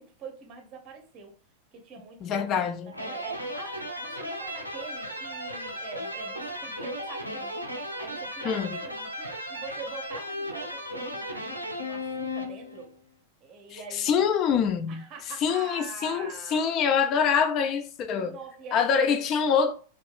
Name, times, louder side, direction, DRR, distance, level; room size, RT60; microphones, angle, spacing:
voice 1, 0.0-1.3 1.7-7.6 8.0-12.9 13.4-14.3 14.9-16.8 18.0-19.7, right 5 dB, 35° right, 0.7 m, -45 dB
voice 2, 2.2-2.9 8.4-8.7 13.7-15.0 15.4-18.3 18.7-19.7, left 7 dB, 35° left, 0.4 m, -25 dB
sound 1, 2.9-12.9, left 1 dB, 90° right, 0.4 m, -35 dB
2.7 x 2.3 x 2.3 m
figure-of-eight pair, 90°, 0 cm